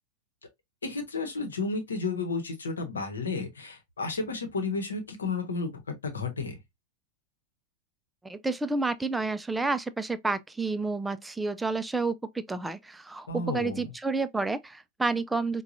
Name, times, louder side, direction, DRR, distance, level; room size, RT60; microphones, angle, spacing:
voice 1, 0.8-5.7 6.0-6.6 13.3-13.9, left 3 dB, 70° left, 0.9 m, -32 dB
voice 2, 8.2-15.6, right 3 dB, 10° right, 0.3 m, -30 dB
4.7 x 2.2 x 2.6 m
figure-of-eight pair, 90°, 0 cm